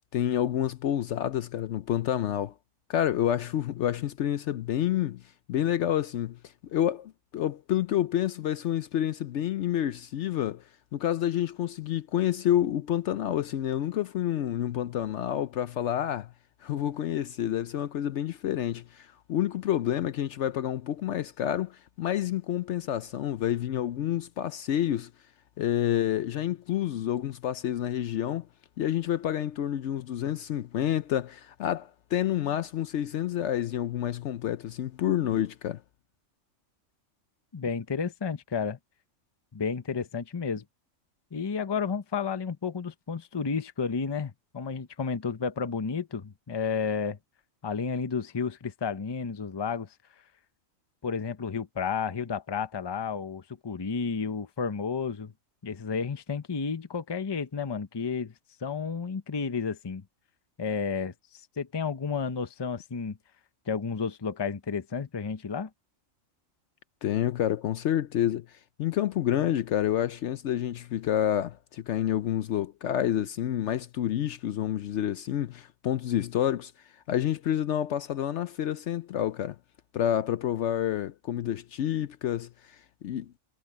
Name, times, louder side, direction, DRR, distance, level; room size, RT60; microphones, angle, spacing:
voice 1, 0.0-2.5 2.9-5.2 5.5-6.4 6.7-10.6 10.9-16.3 16.6-25.1 25.6-28.5 28.8-35.8 67.0-68.5 68.8-76.7 77.1-79.6 79.9-82.5 83.0-83.3, left 11 dB, 65° left, 0.8 m, -28 dB
voice 2, 37.5-38.8 39.5-40.6 41.3-47.2 47.6-49.9 51.0-55.3 55.6-58.3 58.6-60.0 60.6-63.2 63.7-65.7, left 5 dB, 25° left, 0.7 m, -31 dB
omnidirectional pair, 1.4 m